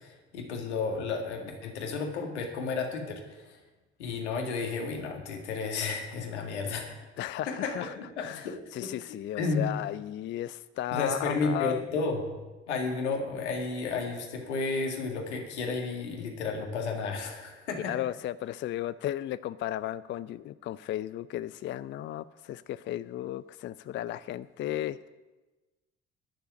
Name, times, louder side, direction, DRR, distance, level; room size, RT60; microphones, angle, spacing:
voice 1, 0.0-3.6 4.0-6.9 7.5-7.9 8.2-8.9 9.4-9.7 10.9-12.3 12.7-17.9, left 4 dB, 75° left, 2 dB, 2.0 m, -32 dB
voice 2, 7.2-11.8 17.9-25.1, left 13 dB, 35° left, 16 dB, 0.4 m, -35 dB
11.5 x 6.9 x 9.2 m, 1.2 s
figure-of-eight pair, 50°, 35 cm